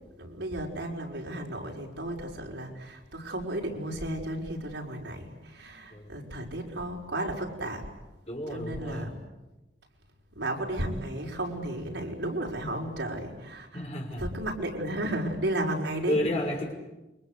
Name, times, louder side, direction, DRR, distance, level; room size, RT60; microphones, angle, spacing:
voice 1, 0.2-7.9 8.5-9.2 10.4-13.8 14.2-16.2, right 1 dB, 80° right, 0 dB, 5.5 m, -33 dB
voice 2, 8.3-9.1 13.7-14.3 16.1-16.7, left 1 dB, 35° left, 1 dB, 5.4 m, -31 dB
29.5 x 24.5 x 8.2 m, 1.0 s
head